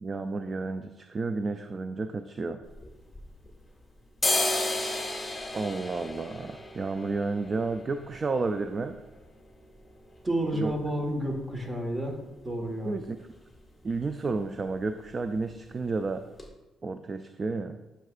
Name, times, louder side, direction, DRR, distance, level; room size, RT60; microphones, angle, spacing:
voice 1, 0.0-2.6 5.5-9.0 10.6-10.7 12.8-13.2 13.8-16.3 16.8-17.8, right 3 dB, 35° right, 9 dB, 0.3 m, -31 dB
sound 1, 2.6-3.7 4.0-11.8 12.1-12.2 12.4-13.0 13.3-13.5 13.8-14.0 14.3-15.0 15.4-15.5 16.0-16.1 16.4-16.5, left 1 dB, 10° left, 1.7 m, -34 dB
voice 2, 10.2-12.2 12.4-12.9, right 1 dB, 20° right, 2 dB, 1.4 m, -30 dB
9.2 x 6.2 x 2.5 m, 1.1 s
cardioid pair, 90°, 0 cm